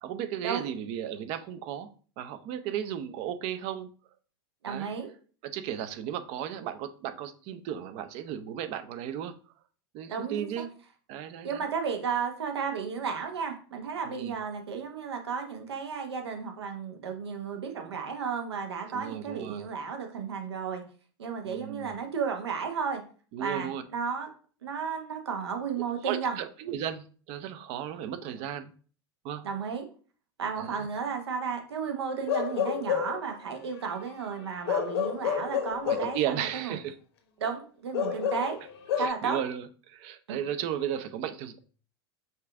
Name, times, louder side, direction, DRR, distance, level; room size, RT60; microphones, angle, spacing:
voice 1, 0.0-1.9 2.2-3.9 4.7-4.9 5.4-9.3 9.9-10.7 11.1-11.7 14.0-14.3 18.9-19.6 21.4-21.9 23.3-23.8 25.7-28.7 29.2-29.4 30.6-30.9 35.9-36.9 38.1-38.2 39.0-41.6, right 10 dB, 50° right, 11 dB, 0.6 m, -35 dB
voice 2, 4.6-5.1 10.1-10.6 11.4-20.8 21.2-23.0 23.4-24.3 24.6-26.4 29.4-29.8 30.4-36.8 37.4-38.6 39.0-39.4 40.3-40.4, right 6 dB, 85° right, 4 dB, 1.0 m, -33 dB
Bark / Livestock farm animals working animals, 32.3-33.3 34.7-36.2 37.9-39.1, left 8 dB, 70° left, 0.9 m, -29 dB
5.5 x 2.5 x 3.5 m, 0.40 s
hypercardioid pair, 95°, 13 cm